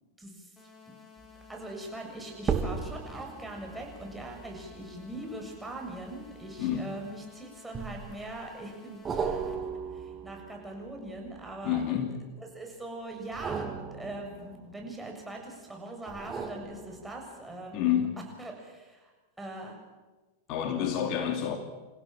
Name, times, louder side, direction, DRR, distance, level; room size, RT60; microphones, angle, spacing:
voice 1, 0.2-0.5 0.9-1.0 1.5-9.4 9.9-12.0 12.4-17.9 18.4-19.1 19.4-19.8, right 2 dB, 5° right, 1 dB, 7.3 m, -41 dB
sound 1, 0.6-9.6, left 6 dB, 15° left, 5.7 m, -54 dB
sound 2, 1.2-1.5 2.4-7.0 7.7-8.4 9.0-12.0 13.2-15.3 16.1-17.5 18.0-18.1, right 5 dB, 25° right, 3.2 m, -37 dB
voice 2, 6.6-6.9 11.6-12.2 17.7-18.2 20.5-21.6, left 9 dB, 50° left, 5 dB, 2.7 m, -28 dB
29.0 x 16.0 x 7.7 m, 1.2 s
hypercardioid pair, 100°, 0 cm